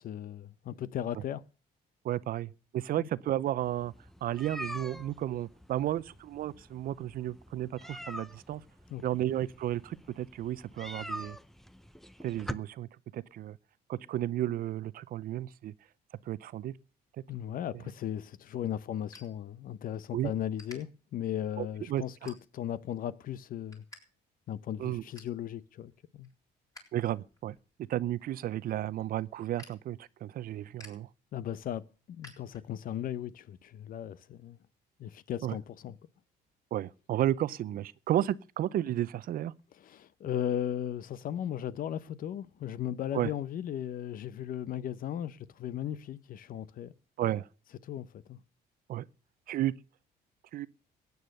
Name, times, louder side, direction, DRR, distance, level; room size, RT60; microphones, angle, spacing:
voice 1, 0.0-1.4 2.9-3.1 8.9-9.0 17.3-23.8 24.5-26.3 31.3-34.6 35.0-36.0 39.8-46.9 47.8-48.4, left 10 dB, 55° left, 0.8 m, -36 dB
voice 2, 2.0-3.9 4.2-8.6 9.0-11.4 12.2-12.9 13.1-13.6 13.9-15.7 16.3-16.7 20.1-20.3 21.6-22.3 24.8-25.0 26.9-27.6 27.9-31.1 35.4-35.6 36.7-39.5 43.1-43.3 47.2-47.5 48.9-49.0 49.5-49.7 50.5-50.7, right 12 dB, 60° right, 0.6 m, -33 dB
sound 1, 3.6-12.5, equal, ahead, 0.6 m, -45 dB
sound 2, 19.1-20.0 20.3-20.8 21.3-21.6 22.1-22.8 23.2-24.0 24.3-24.4 24.8-25.4 25.9-26.8 27.2-33.0, left 2 dB, 20° left, 6.3 m, -55 dB
16.0 x 9.5 x 6.6 m
cardioid pair, 110°, 17 cm